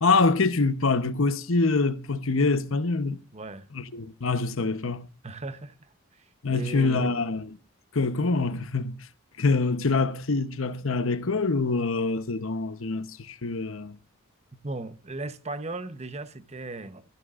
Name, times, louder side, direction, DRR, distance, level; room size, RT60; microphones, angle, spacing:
voice 1, 0.0-3.2 3.7-5.1 6.4-7.6 7.9-8.9 9.4-14.0, left 3 dB, 70° left, 1.0 m, -25 dB
voice 2, 3.3-3.7 5.2-5.7 6.5-7.2 14.6-17.0, right 2 dB, 30° right, 1.0 m, -36 dB
22.5 x 14.5 x 2.5 m
head